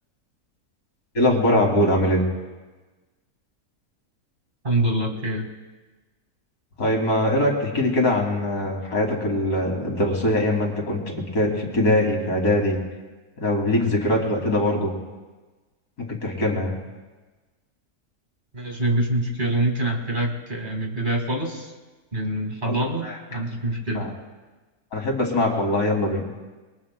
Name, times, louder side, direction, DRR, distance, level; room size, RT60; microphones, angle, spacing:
voice 1, 1.1-2.2 6.8-12.8 13.4-14.9 16.0-16.8 22.7-22.8 23.0-23.2 23.9-24.1 24.9-26.2, left 1 dB, 75° left, 0 dB, 3.3 m, -22 dB
voice 2, 4.6-5.5 18.5-21.7 22.1-24.1, right 1 dB, 30° right, 2 dB, 2.0 m, -25 dB
28.0 x 22.5 x 2.2 m, 1.3 s
omnidirectional pair, 1.7 m